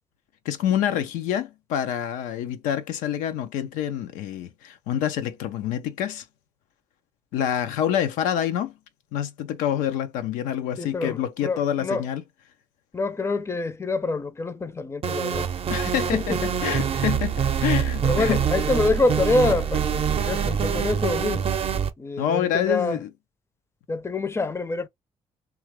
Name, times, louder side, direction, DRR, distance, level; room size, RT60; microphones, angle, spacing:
voice 1, 0.4-6.2 7.3-8.7 9.1-12.2 15.7-18.5 22.2-23.1, left 10 dB, 85° left, 0.5 m, -27 dB
voice 2, 10.8-12.0 12.9-15.5 16.1-16.4 18.0-21.5 22.0-23.0 23.9-24.9, left 3 dB, 20° left, 0.5 m, -26 dB
sound 1, 15.0-21.9, right 7 dB, 45° right, 0.6 m, -25 dB
2.8 x 2.4 x 3.0 m
supercardioid pair, 65°, 13 cm